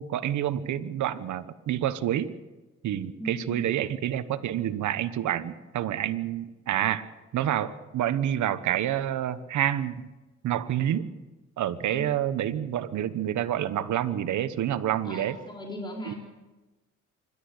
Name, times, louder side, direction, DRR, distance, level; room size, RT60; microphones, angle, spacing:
voice 1, 0.0-2.3 2.8-7.1 7.3-10.1 10.4-11.1 11.6-15.4 16.0-16.1, right 11 dB, 75° right, 13 dB, 1.2 m, -28 dB
voice 2, 3.2-3.8 11.9-12.1 15.0-16.2, left 1 dB, 15° left, -2 dB, 4.5 m, -38 dB
26.0 x 12.5 x 8.0 m, 1.1 s
cardioid pair, 90°, 30 cm